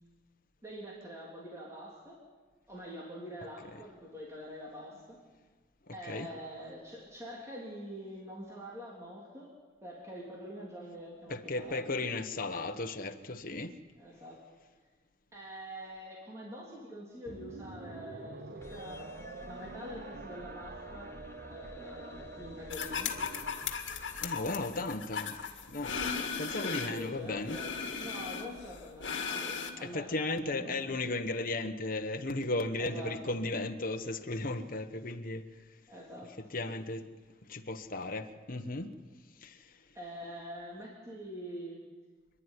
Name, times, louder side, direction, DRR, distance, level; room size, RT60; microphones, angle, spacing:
voice 1, 0.6-2.2 2.7-5.2 5.9-9.5 9.8-11.9 14.0-14.4 15.3-19.1 19.4-21.2 21.5-23.2 26.6-30.1 30.5-30.8 32.8-33.2 35.9-36.4 39.9-41.8, equal, 15° right, 3.4 m, -45 dB
voice 2, 5.9-6.3 11.3-13.8 24.2-25.4 25.7-27.6 29.8-35.5 36.4-37.1 37.5-39.0 39.4-39.7, left 2 dB, 50° left, 1.2 m, -35 dB
sound 1, 17.3-23.7, right 2 dB, 55° right, 1.0 m, -46 dB
sound 2, 18.6-25.2, left 1 dB, 15° left, 1.2 m, -52 dB
sound 3, 22.7-27.1 27.4-29.7, left 6 dB, 70° left, 2.0 m, -37 dB
26.5 x 11.5 x 9.8 m
head